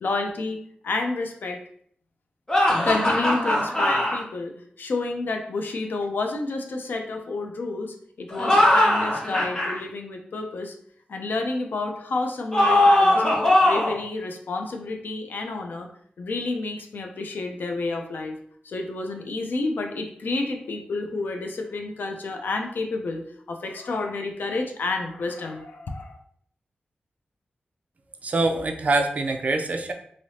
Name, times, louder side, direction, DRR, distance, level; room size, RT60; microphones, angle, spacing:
voice 1, 0.0-0.6 0.8-1.6 2.8-10.7 11.1-13.2 13.6-15.9 16.2-18.4 18.6-26.2, left 3 dB, 70° left, 3 dB, 0.5 m, -30 dB
sound 1, 2.5-4.2 8.3-9.7 12.5-14.0, left 1 dB, 20° left, 0.8 m, -20 dB
voice 2, 28.2-29.9, right 2 dB, 45° right, 4 dB, 0.4 m, -24 dB
3.2 x 2.8 x 2.7 m, 0.63 s
wide cardioid pair, 135°, 3 cm